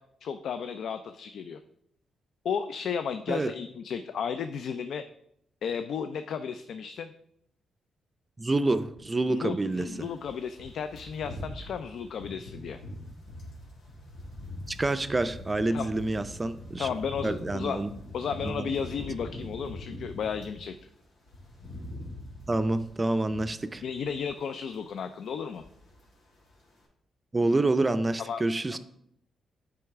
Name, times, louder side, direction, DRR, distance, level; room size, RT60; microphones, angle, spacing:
voice 1, 0.2-1.6 2.4-5.0 5.6-7.1 9.3-12.8 15.7-15.9 16.8-17.8 18.1-20.8 23.8-25.6 28.2-28.4 28.7-28.8, left 7 dB, 70° left, 9 dB, 0.3 m, -33 dB
voice 2, 8.4-10.1 14.7-16.9 17.2-17.9 18.4-18.7 22.5-23.8 27.3-28.8, right 2 dB, 20° right, 12 dB, 0.4 m, -27 dB
sound 1, 9.7-20.7 21.0-24.4 24.7-25.0 25.3-26.1 26.3-26.5, left 1 dB, 90° left, 2.2 m, -43 dB
7.8 x 4.7 x 3.5 m, 0.73 s
cardioid pair, 95°, 0 cm